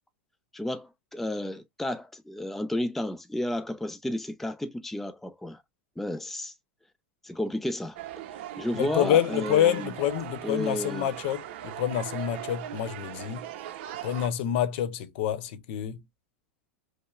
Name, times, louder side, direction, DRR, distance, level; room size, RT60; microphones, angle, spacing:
voice 1, 0.5-5.6 6.0-6.5 7.2-8.0 8.6-9.9 10.4-11.1, left 1 dB, 5° left, 0.5 m, -32 dB
sound 1, 8.0-14.3, right 11 dB, 65° right, 0.6 m, -39 dB
voice 2, 8.7-13.5 14.0-16.0, left 10 dB, 65° left, 0.8 m, -27 dB
5.3 x 2.0 x 2.3 m
hypercardioid pair, 100°, 7 cm